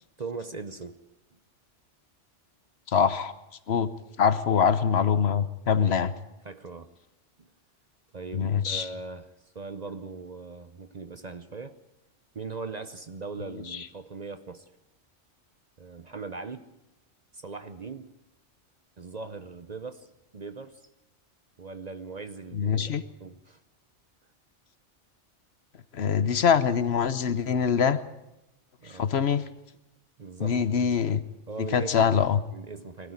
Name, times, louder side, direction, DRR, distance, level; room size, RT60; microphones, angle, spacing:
voice 1, 0.2-1.0 5.8-6.0 6.4-7.0 7.4-7.5 8.1-11.8 12.3-14.7 15.8-16.8 17.3-18.2 19.0-20.8 21.6-23.6 28.8-29.1 30.2-30.6 31.5-32.1 32.5-33.1, right 4 dB, 40° right, 0.8 m, -40 dB
voice 2, 2.9-3.3 3.7-3.9 4.2-6.1 8.3-8.9 13.7-13.8 22.5-23.0 25.9-28.0 28.9-29.5 30.4-31.2 31.7-32.4, left 7 dB, 60° left, 1.1 m, -24 dB
20.5 x 13.0 x 9.7 m
omnidirectional pair, 1.2 m